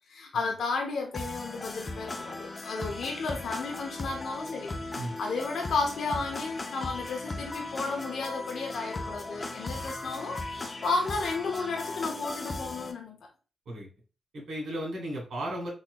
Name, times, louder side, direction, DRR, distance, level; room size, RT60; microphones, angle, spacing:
voice 1, 0.1-13.2, left 3 dB, 75° left, 2 dB, 0.7 m, -33 dB
sound 1, 1.1-12.9, left 2 dB, 35° left, 0.6 m, -37 dB
voice 2, 14.3-15.7, right 1 dB, 75° right, -2 dB, 2.0 m, -35 dB
3.9 x 3.1 x 2.2 m, 0.34 s
cardioid pair, 65°, 0 cm